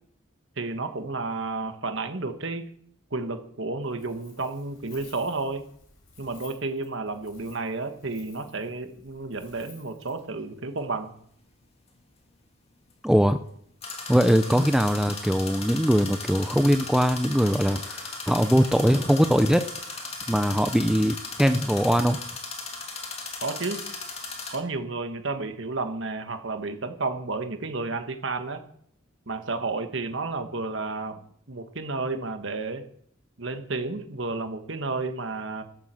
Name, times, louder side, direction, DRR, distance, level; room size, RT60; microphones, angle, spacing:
voice 1, 0.6-2.7 3.1-5.6 6.2-11.1 23.4-23.8 24.5-28.6 29.3-31.1 31.5-32.8 33.4-35.6, right 3 dB, 60° right, 7 dB, 1.4 m, -31 dB
Wind, 3.8-10.3, left 5 dB, 80° left, 4.5 m, -55 dB
sound 1, 10.0-10.1 13.8-24.6, left 3 dB, 30° left, 2.3 m, -37 dB
voice 2, 13.0-13.4 14.1-19.6 20.0-22.2, equal, 5° right, 8 dB, 0.4 m, -21 dB
13.5 x 7.4 x 7.6 m, 0.66 s
head